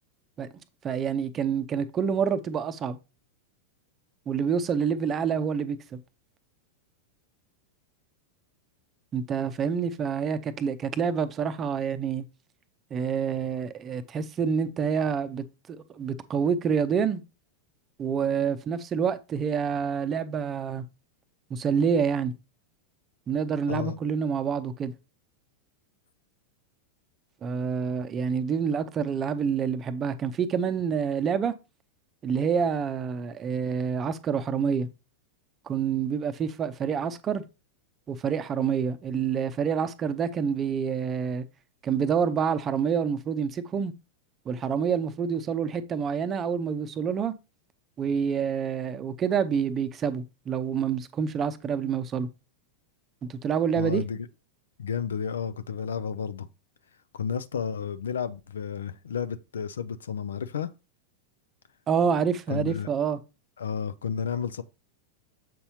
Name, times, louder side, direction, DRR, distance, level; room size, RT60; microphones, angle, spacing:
voice 1, 0.8-3.0 4.3-6.0 9.1-12.2 12.9-17.2 18.0-20.9 21.5-22.3 23.3-24.9 27.4-31.5 32.2-34.9 35.7-37.4 38.1-41.5 41.8-43.9 44.5-47.3 48.0-52.3 53.2-54.0 61.9-63.2, right 7 dB, 25° right, 0.7 m, -27 dB
voice 2, 53.8-54.3 54.8-56.5 57.1-60.7 62.5-62.9 63.6-64.6, left 7 dB, 65° left, 0.5 m, -31 dB
7.6 x 5.5 x 2.8 m
figure-of-eight pair, 90°, 0 cm